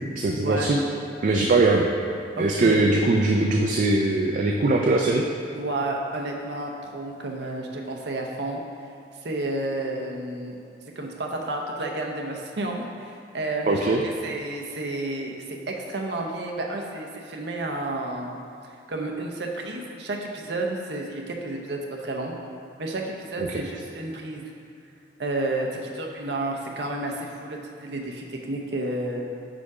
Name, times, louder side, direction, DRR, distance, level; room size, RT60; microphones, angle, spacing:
voice 1, 0.2-0.8 1.2-1.9 2.4-5.2 13.7-14.0, right 2 dB, 45° right, 1 dB, 0.3 m, -21 dB
voice 2, 2.3-3.0 5.5-8.6 9.2-10.6 11.0-18.3 18.9-22.3 22.8-24.5 25.2-29.2, right 2 dB, 65° right, 0 dB, 0.7 m, -31 dB
5.0 x 4.9 x 4.7 m, 2.5 s
head